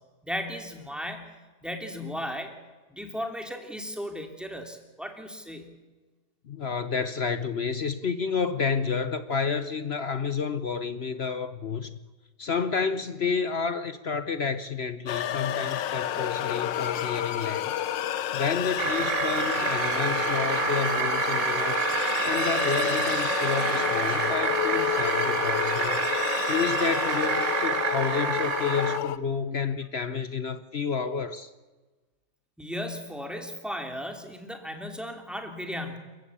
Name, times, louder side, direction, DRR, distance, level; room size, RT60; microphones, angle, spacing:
voice 1, 0.2-1.3 1.6-2.5 2.9-5.8 32.6-36.0, equal, ahead, 2.8 m, -36 dB
voice 2, 6.5-12.0 12.4-17.7 18.3-21.9 22.2-26.1 26.5-31.5, left 5 dB, 50° left, 0.8 m, -30 dB
sound 1, 15.1-29.2, left 11 dB, 75° left, 1.6 m, -29 dB
sound 2, 18.8-29.0, right 9 dB, 85° right, 1.8 m, -28 dB
28.5 x 15.0 x 8.4 m
omnidirectional pair, 2.1 m